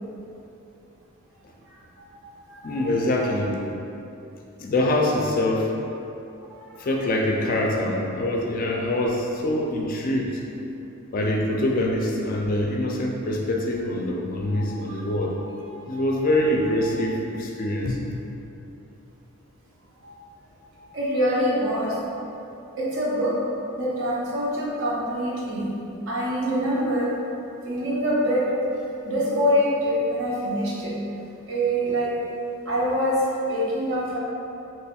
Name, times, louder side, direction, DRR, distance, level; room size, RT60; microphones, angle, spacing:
voice 1, 1.7-3.1 6.5-6.6 14.5-15.0 15.4-16.1 16.3-16.4 16.8-16.9 20.0-20.1 20.7-22.0 22.8-23.3 23.8-25.7 26.1-27.1 27.6-28.5 29.0-30.9 31.5-32.1 32.7-33.2 33.5-34.2, equal, 65° right, -6 dB, 0.8 m, -26 dB
voice 2, 2.6-3.6 4.6-5.7 6.8-10.4 11.1-15.4 15.9-18.2, left 1 dB, 40° left, -1 dB, 0.3 m, -24 dB
4.2 x 3.0 x 2.3 m, 2.8 s
head